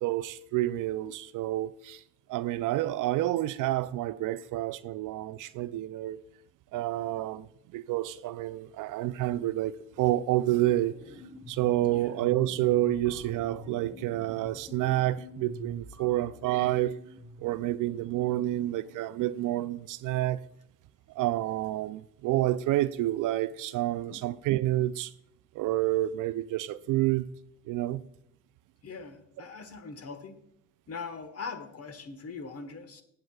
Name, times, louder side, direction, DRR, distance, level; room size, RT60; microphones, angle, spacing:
voice 1, 0.0-2.0 2.3-6.2 6.7-10.9 11.5-16.9 17.4-20.4 21.1-25.1 25.5-27.3 27.7-28.0, right 15 dB, 60° right, 0.5 m, -29 dB
sound 1, 10.3-17.5, left 1 dB, 10° left, 1.2 m, -47 dB
voice 2, 28.8-30.4 30.9-33.0, left 4 dB, 40° left, 1.3 m, -41 dB
18.5 x 7.7 x 2.4 m
supercardioid pair, 75°, 36 cm